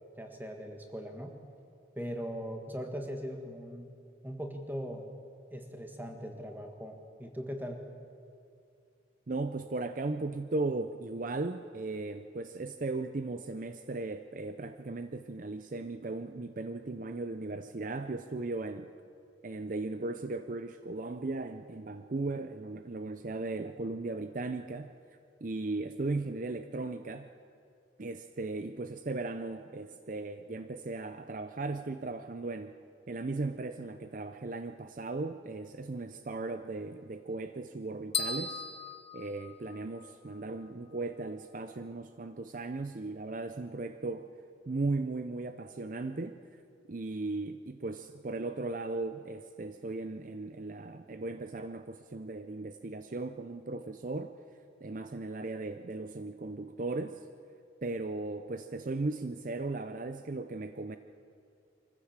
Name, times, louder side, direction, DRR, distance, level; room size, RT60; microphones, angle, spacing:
voice 1, 0.2-1.3 1.9-3.9 4.2-5.1 5.5-7.8, equal, 10° right, 4 dB, 1.7 m, -40 dB
voice 2, 9.3-18.9 19.4-24.9 25.4-27.3 28.0-32.7 33.1-38.7 39.1-44.3 44.7-46.6 46.9-54.3 54.8-57.2 57.8-61.0, right 3 dB, 45° right, 9 dB, 0.5 m, -37 dB
sound 1, 38.1-40.1, left 5 dB, 30° left, 0.8 m, -36 dB
24.0 x 15.0 x 7.4 m, 2.5 s
head